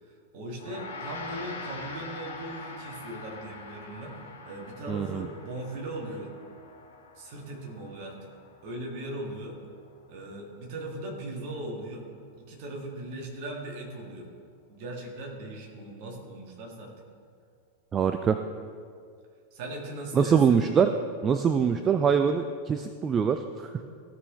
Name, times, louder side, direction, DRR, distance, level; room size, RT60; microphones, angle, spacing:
voice 1, 0.0-4.2 4.4-6.3 7.2-8.3 8.6-9.6 10.1-12.1 12.4-14.3 14.7-16.9 19.5-20.6, right 1 dB, 45° right, -1 dB, 1.9 m, -39 dB
Gong, 0.6-10.1, left 3 dB, 65° left, 1.4 m, -44 dB
voice 2, 4.9-5.3 17.9-18.4 20.1-20.9 21.2-23.8, right 7 dB, 25° right, 8 dB, 0.3 m, -24 dB
15.0 x 5.4 x 3.1 m, 2.2 s
figure-of-eight pair, 90°, 0 cm